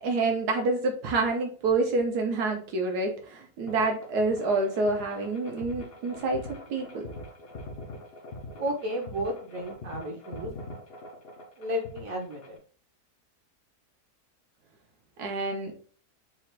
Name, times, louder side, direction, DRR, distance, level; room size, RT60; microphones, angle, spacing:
voice 1, 0.0-7.1 15.2-15.7, right 3 dB, 75° right, 3 dB, 1.5 m, -28 dB
sound 1, 3.7-12.6, left 2 dB, 50° left, 0.8 m, -43 dB
voice 2, 8.6-10.5 11.6-12.6, equal, 60° right, 1 dB, 1.3 m, -33 dB
4.4 x 2.5 x 4.4 m, 0.42 s
omnidirectional pair, 1.7 m